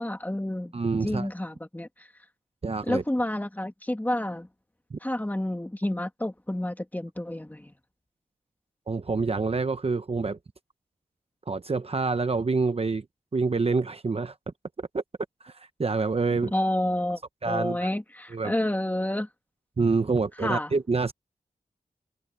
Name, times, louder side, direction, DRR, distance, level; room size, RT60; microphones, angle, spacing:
voice 1, 0.0-0.7 1.0-2.1 2.8-4.5 5.0-7.7 16.5-17.2 17.5-19.3 20.4-20.7, left 1 dB, 10° left, 2.0 m, -29 dB
voice 2, 0.7-1.3 2.6-3.0 4.9-5.0 8.9-10.4 11.5-13.1 13.3-14.3 14.8-15.0 15.4-16.5 17.4-17.8 18.3-18.5 19.8-21.1, right 4 dB, 40° right, 0.9 m, -27 dB
wide cardioid pair, 90°, 15 cm